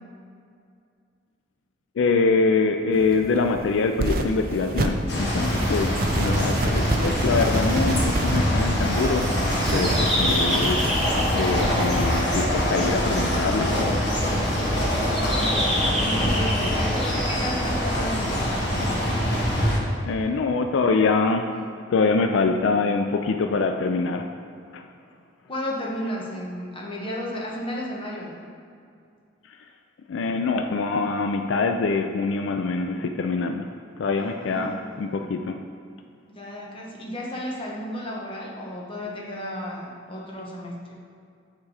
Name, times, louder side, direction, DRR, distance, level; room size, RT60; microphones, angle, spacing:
voice 1, 2.0-14.0 20.1-21.5 21.9-24.3 24.7-24.8 30.1-33.7 34.0-34.7 35.0-35.6, left 4 dB, 75° left, 5 dB, 0.4 m, -24 dB
sound 1, 2.9-12.4, right 2 dB, 50° right, 0.5 m, -30 dB
sound 2, 5.1-19.8, equal, 60° left, 1.8 m, -24 dB
sound 3, 8.4-19.8, left 1 dB, 5° left, 1.1 m, -31 dB
voice 2, 15.3-18.9 25.5-28.4 34.2-35.3 36.3-40.9, equal, 30° left, -4 dB, 1.1 m, -33 dB
8.8 x 3.6 x 4.8 m, 2.3 s
head